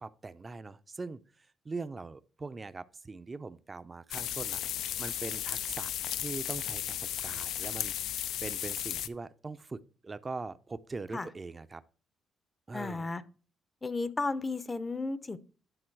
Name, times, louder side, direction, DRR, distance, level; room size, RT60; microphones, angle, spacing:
voice 1, 0.0-4.6 5.0-5.9 6.2-11.8 12.7-13.1, right 3 dB, 25° right, 0.5 m, -42 dB
sound 1, 4.1-9.1, left 11 dB, 85° left, 0.4 m, -35 dB
voice 2, 12.7-13.2 13.8-15.4, left 3 dB, 25° left, 0.6 m, -33 dB
10.0 x 3.8 x 4.6 m
cardioid pair, 90°, 0 cm